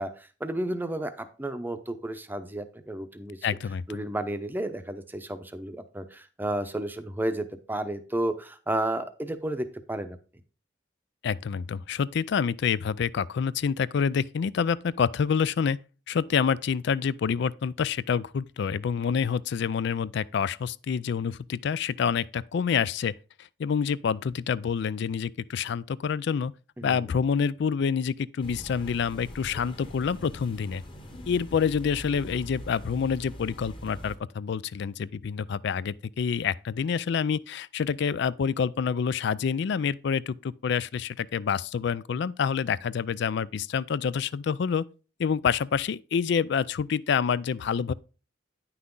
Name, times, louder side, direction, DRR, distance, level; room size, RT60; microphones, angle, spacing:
voice 1, 0.0-3.5 3.9-10.2 26.8-27.1, right 1 dB, 10° right, 0.7 m, -32 dB
voice 2, 3.4-4.0 11.2-15.8 16.1-23.1 23.4-26.5 26.8-30.8 31.3-44.8 45.2-47.9, left 6 dB, 60° left, 0.3 m, -27 dB
sound 1, 28.4-34.2, equal, 25° left, 1.2 m, -43 dB
9.5 x 5.9 x 3.8 m
head